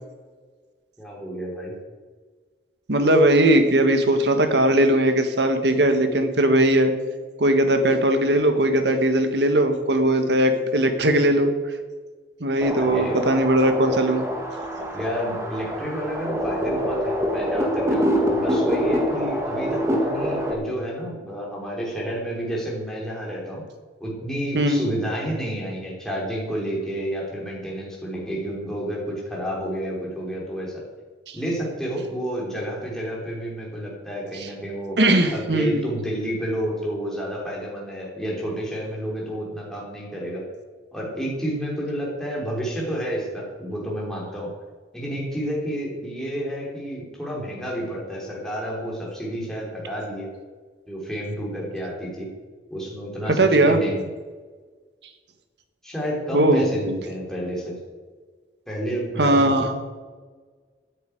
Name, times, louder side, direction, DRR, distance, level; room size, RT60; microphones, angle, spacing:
voice 1, 1.0-1.7 12.8-13.2 14.9-23.6 24.0-30.8 31.3-35.0 35.3-40.4 40.9-44.5 44.9-50.3 50.9-52.3 52.7-54.0 55.8-57.7 58.7-59.6, equal, 5° left, -4 dB, 3.4 m, -30 dB
voice 2, 2.9-6.9 7.4-11.5 12.4-14.2 24.5-24.8 31.3-31.4 34.4-34.5 35.0-35.8 53.3-53.8 56.3-56.9 59.2-59.7, right 1 dB, 75° right, 7 dB, 1.6 m, -19 dB
sound 1, 12.6-20.5, equal, 15° right, 1.9 m, -25 dB
9.7 x 8.5 x 9.3 m, 1.4 s
head